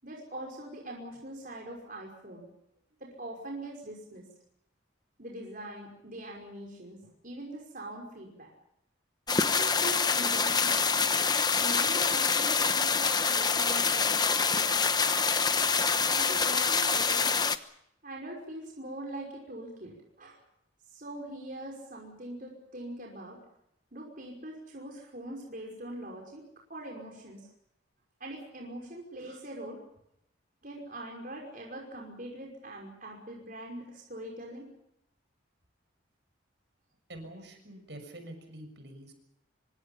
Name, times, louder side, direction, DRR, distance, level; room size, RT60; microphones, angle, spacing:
voice 1, 0.0-2.5 3.0-4.2 5.2-8.5 9.3-10.8 11.6-15.2 16.1-17.3 18.0-20.4 20.9-23.4 23.9-26.4 26.7-27.5 28.2-29.8 30.6-34.7, right 1 dB, 45° right, 0 dB, 5.6 m, -42 dB
sound 1, 9.3-17.6, left 5 dB, 20° left, 1.1 m, -26 dB
voice 2, 37.1-39.1, right 1 dB, 60° right, 7 dB, 6.5 m, -46 dB
26.0 x 24.5 x 5.8 m, 0.78 s
head